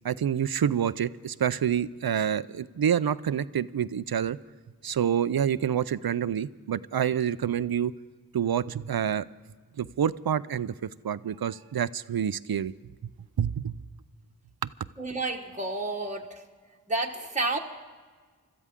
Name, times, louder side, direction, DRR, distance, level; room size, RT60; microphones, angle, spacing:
voice 1, 0.0-4.4 4.8-7.9 8.3-9.2 9.8-12.7 13.4-13.7, right 8 dB, 80° right, 16 dB, 0.5 m, -27 dB
voice 2, 15.0-16.4 16.9-17.6, right 2 dB, 20° right, 0 dB, 1.3 m, -30 dB
25.5 x 14.0 x 3.6 m, 1.5 s
wide cardioid pair, 55°, 36 cm